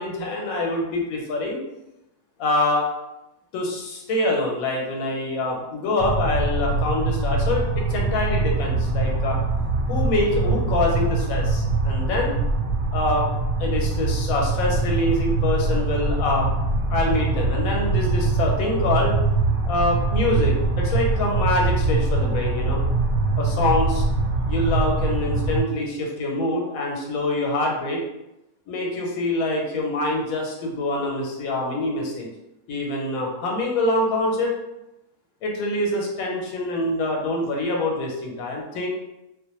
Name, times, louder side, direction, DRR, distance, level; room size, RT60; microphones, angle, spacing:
voice 1, 0.0-1.6 2.4-2.9 3.5-9.4 9.9-12.3 12.9-13.3 13.6-16.5 16.9-19.1 19.7-22.8 23.4-24.0 24.5-28.0 28.7-32.3 32.7-34.5 35.4-38.9, left 2 dB, 90° left, -1 dB, 1.1 m, -25 dB
sound 1, 6.0-25.6, right 3 dB, 85° right, 1.1 m, -23 dB
2.4 x 2.0 x 2.9 m, 0.92 s
omnidirectional pair, 1.5 m